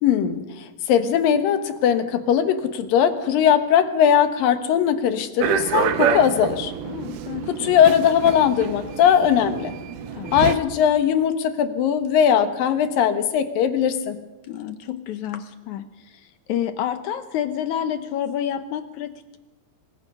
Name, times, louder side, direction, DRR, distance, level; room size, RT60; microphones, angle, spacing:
voice 1, 0.0-6.7 7.5-9.7 10.3-14.2, left 9 dB, 65° left, 9 dB, 2.9 m, -19 dB
sound 1, 5.4-10.5, right 8 dB, 75° right, 2.9 m, -27 dB
voice 2, 6.8-7.7 10.1-10.4 14.4-19.4, left 10 dB, 85° left, 10 dB, 1.7 m, -29 dB
26.5 x 24.0 x 5.5 m, 1.1 s
omnidirectional pair, 4.6 m